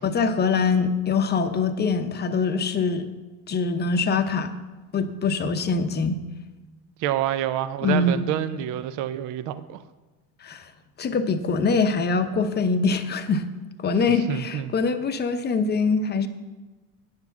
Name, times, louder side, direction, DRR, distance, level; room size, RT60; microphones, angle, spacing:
voice 1, 0.0-3.1 3.5-4.5 4.9-6.2 7.8-8.3 10.4-10.7 11.0-13.5 13.8-16.3, left 4 dB, 25° left, 9 dB, 0.8 m, -23 dB
voice 2, 7.0-9.8 14.1-14.7, right 11 dB, 45° right, 12 dB, 0.6 m, -28 dB
9.5 x 7.1 x 7.1 m, 1.2 s
supercardioid pair, 115°, 42 cm